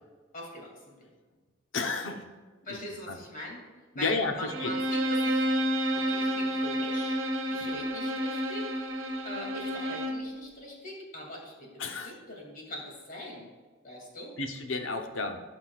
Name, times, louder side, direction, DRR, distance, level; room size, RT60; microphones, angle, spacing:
voice 1, 0.3-0.8 2.6-3.6 3.9-5.5 5.9-7.2 7.5-8.7 9.2-13.5 13.8-14.3, left 1 dB, 45° left, -2 dB, 2.6 m, -42 dB
voice 2, 1.7-2.3 2.7-2.8 3.1-3.2 3.9-4.7 11.8-12.1 14.4-15.4, left 3 dB, 75° left, 5 dB, 0.9 m, -31 dB
Bowed string instrument, 4.5-10.3, equal, 75° right, 1.1 m, -30 dB
17.5 x 6.0 x 2.4 m, 1.4 s
head